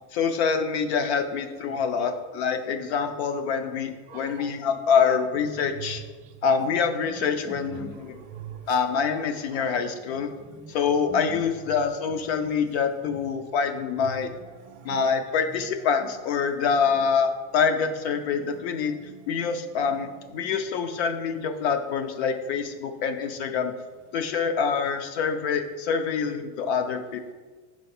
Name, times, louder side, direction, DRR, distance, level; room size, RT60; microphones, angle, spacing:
voice 1, 0.1-6.0 6.4-8.2 8.7-10.3 10.7-14.3 14.8-19.0 19.3-23.7 24.1-27.3, left 6 dB, 60° left, 8 dB, 0.7 m, -26 dB
voice 2, 4.1-4.5 4.9-5.9 6.6-6.7 7.0-9.0 9.5-9.8 10.1-10.8 11.0-11.8 12.4-12.5 13.0-13.3 14.0-15.1 15.5-16.1 16.7-17.0 18.1-19.3 19.8-20.1, right 5 dB, 20° right, 0 dB, 0.5 m, -44 dB
6.6 x 4.6 x 4.3 m, 1.4 s
supercardioid pair, 175°, 37 cm